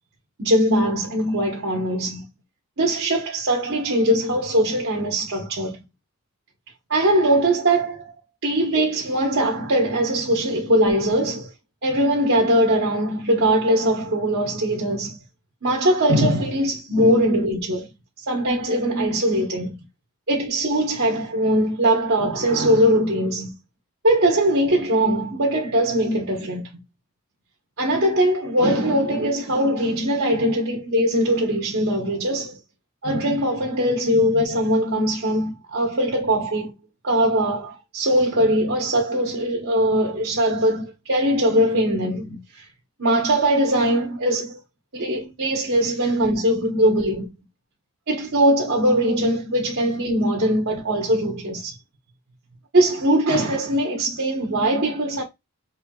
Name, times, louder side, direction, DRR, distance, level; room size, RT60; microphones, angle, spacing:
voice 1, 0.4-2.2 2.8-5.8 6.9-8.1 8.4-11.5 11.8-15.2 15.6-17.9 18.2-19.8 20.3-23.5 24.0-26.7 27.8-32.6 33.0-36.7 37.0-42.6 43.0-44.6 44.9-47.3 48.1-51.8 52.7-55.2, right 1 dB, 65° right, 1.0 m, -21 dB
4.4 x 3.3 x 2.3 m
head